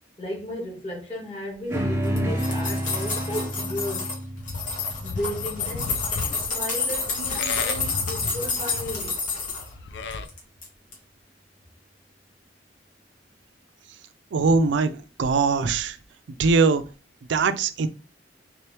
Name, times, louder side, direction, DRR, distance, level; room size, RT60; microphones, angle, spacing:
voice 1, 0.2-4.1 5.0-5.9 6.2-9.2, equal, 30° left, 1.8 m, -34 dB
sound 1, 1.7-6.4, right 1 dB, 15° right, 0.6 m, -30 dB
sound 2, 2.0-4.2 4.5-9.7 10.1-10.7 10.9-11.0, left 4 dB, 50° left, 1.3 m, -29 dB
Livestock farm animals working animals, 4.4-10.3, left 4 dB, 75° left, 0.4 m, -35 dB
voice 2, 14.3-14.9 15.2-16.0 16.4-16.8 17.3-17.9, right 4 dB, 90° right, 0.4 m, -21 dB
3.7 x 2.9 x 3.3 m
head